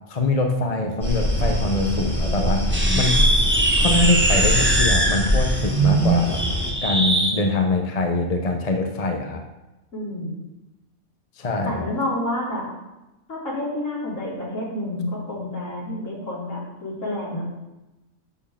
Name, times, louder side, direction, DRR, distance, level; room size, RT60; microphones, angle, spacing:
voice 1, 0.1-2.7 2.9-3.1 3.8-6.4 6.8-9.4 11.4-11.9, left 2 dB, 30° left, 4 dB, 0.9 m, -23 dB
sound 1, 1.0-6.7, equal, 10° left, 2.3 m, -23 dB
sound 2, 2.7-7.4, right 2 dB, 10° right, 1.0 m, -21 dB
voice 2, 9.9-10.5 11.6-12.6 13.3-17.4, left 1 dB, 65° left, -6 dB, 3.9 m, -29 dB
11.0 x 4.6 x 7.3 m, 1.0 s
omnidirectional pair, 1.4 m